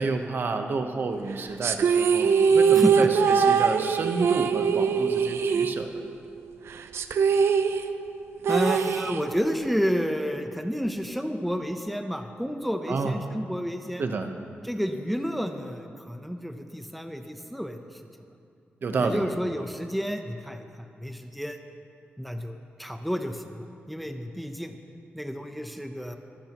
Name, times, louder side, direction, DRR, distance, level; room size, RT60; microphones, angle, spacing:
voice 1, 0.0-5.9 12.9-13.2 14.0-14.3 18.8-19.2, right 4 dB, 55° right, 6 dB, 1.0 m, -30 dB
sound 1, 1.6-6.3 6.5-6.6 6.9-9.6, right 6 dB, 80° right, 0.6 m, -22 dB
voice 2, 8.5-14.0 14.6-18.0 19.0-21.6 22.2-24.8 25.1-26.2, equal, ahead, 5 dB, 0.7 m, -30 dB
22.5 x 14.0 x 3.0 m, 2.4 s
wide cardioid pair, 140°, 4 cm